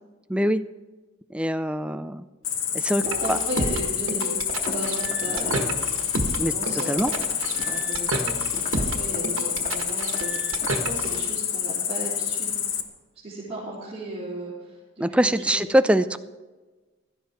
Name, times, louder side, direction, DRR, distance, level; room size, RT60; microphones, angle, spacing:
voice 1, 0.3-0.6 1.3-2.2 2.7-3.0 3.3-3.4 6.4-6.5 6.9-7.1 15.0-16.2, right 1 dB, 5° right, 11 dB, 0.4 m, -22 dB
Cricket, 2.4-12.8, left 8 dB, 75° left, 1.2 m, -28 dB
voice 2, 3.0-6.2 6.5-7.4 7.7-12.6 13.2-15.6, right 2 dB, 30° right, -10 dB, 3.8 m, -36 dB
sound 1, 3.0-11.3, right 2 dB, 85° right, 1.5 m, -31 dB
Walk footsteps, 4.7-10.7, left 1 dB, 35° left, 2.0 m, -41 dB
16.0 x 12.5 x 4.5 m, 1.2 s
head